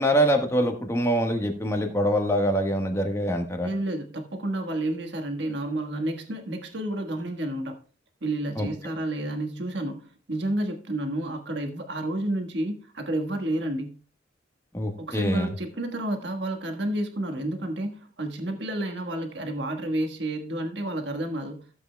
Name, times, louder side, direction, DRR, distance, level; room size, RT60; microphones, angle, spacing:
voice 1, 0.0-3.7 8.6-8.7 14.7-15.5, equal, 15° left, 4 dB, 1.3 m, -24 dB
voice 2, 3.6-7.8 8.2-14.0 15.0-21.7, right 1 dB, 70° right, 5 dB, 1.4 m, -30 dB
15.0 x 7.8 x 2.2 m, 0.41 s
head